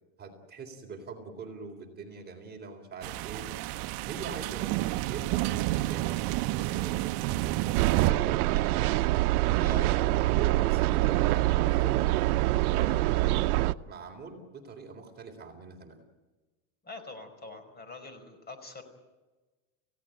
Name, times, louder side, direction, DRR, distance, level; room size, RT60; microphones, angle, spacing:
voice 1, 0.2-3.5 4.0-4.7 5.1-6.2 6.5-8.8 9.5-12.2 12.7-13.5 13.9-16.0, right 4 dB, 20° right, 2 dB, 3.9 m, -43 dB
sound 1, 3.0-8.1, right 17 dB, 55° right, 0.9 m, -30 dB
sound 2, 7.7-13.7, right 18 dB, 80° right, 0.9 m, -25 dB
voice 2, 16.8-18.8, left 3 dB, 20° left, 8 dB, 5.0 m, -44 dB
29.5 x 17.0 x 9.1 m, 1.2 s
supercardioid pair, 135°, 44 cm